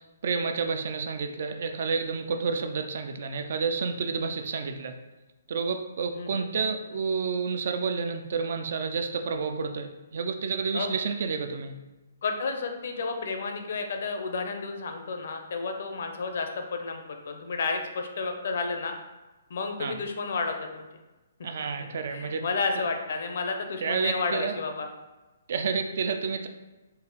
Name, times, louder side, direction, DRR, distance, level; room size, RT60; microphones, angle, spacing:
voice 1, 0.0-5.0 5.5-11.7 19.8-19.9 21.4-22.4 23.8-24.5 25.5-26.5, right 5 dB, 55° right, 6 dB, 0.4 m, -30 dB
voice 2, 6.1-6.5 10.7-10.9 12.2-18.9 19.5-20.9 21.8-24.9, left 4 dB, 60° left, 5 dB, 0.5 m, -31 dB
4.1 x 2.0 x 3.8 m, 1.1 s
hypercardioid pair, 160°, 0 cm